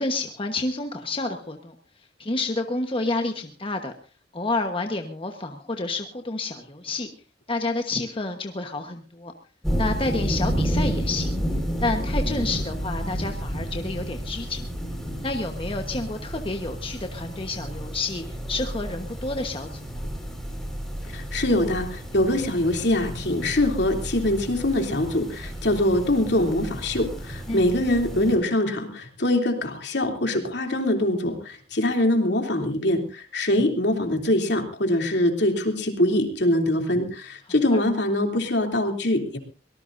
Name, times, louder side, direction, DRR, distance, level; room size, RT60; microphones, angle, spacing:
voice 1, 0.0-1.7 2.2-3.9 4.3-7.1 7.5-9.3 9.8-11.4 11.8-14.7 15.2-20.1 27.5-27.7 37.7-37.8, left 2 dB, 30° left, 4 dB, 1.3 m, -29 dB
sound 1, 9.6-28.3, equal, ahead, 5.0 m, -31 dB
voice 2, 21.1-39.4, left 1 dB, 65° left, 3 dB, 3.1 m, -23 dB
24.0 x 19.0 x 2.7 m, 0.35 s
head